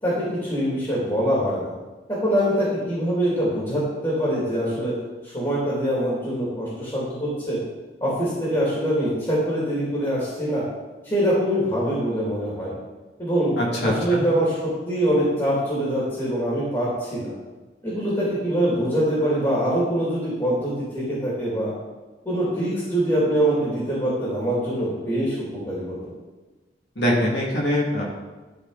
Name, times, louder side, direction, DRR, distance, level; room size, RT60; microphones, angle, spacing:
voice 1, 0.0-1.7 2.1-4.9 5.2-7.6 8.0-10.6 11.0-12.7 13.2-13.5 13.8-17.3 17.8-21.7 22.2-26.1, equal, 25° left, -8 dB, 2.5 m, -24 dB
voice 2, 13.6-14.2 27.0-28.0, equal, 75° left, -3 dB, 2.2 m, -23 dB
12.5 x 4.4 x 4.0 m, 1.2 s
head